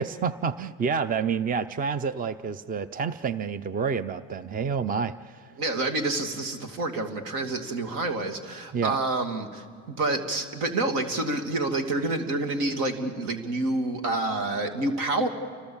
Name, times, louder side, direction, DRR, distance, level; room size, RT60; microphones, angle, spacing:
voice 1, 0.0-5.4 8.7-9.0, right 6 dB, 25° right, 14 dB, 0.6 m, -28 dB
voice 2, 5.6-15.3, right 2 dB, 75° right, 5 dB, 2.7 m, -28 dB
29.5 x 25.0 x 7.2 m, 2.1 s
supercardioid pair, 100°, 32 cm